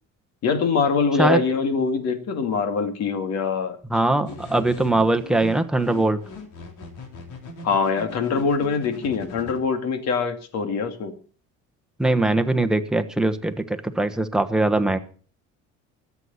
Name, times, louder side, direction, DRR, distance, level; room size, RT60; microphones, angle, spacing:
voice 1, 0.4-3.8 4.5-4.6 7.6-11.1, left 5 dB, 55° left, 7 dB, 2.5 m, -23 dB
voice 2, 3.9-6.2 12.0-15.0, right 2 dB, ahead, 6 dB, 1.1 m, -21 dB
sound 1, 4.3-9.6, left 3 dB, 80° left, 3.7 m, -40 dB
24.0 x 8.3 x 4.2 m, 0.41 s
cardioid pair, 140°, 30 cm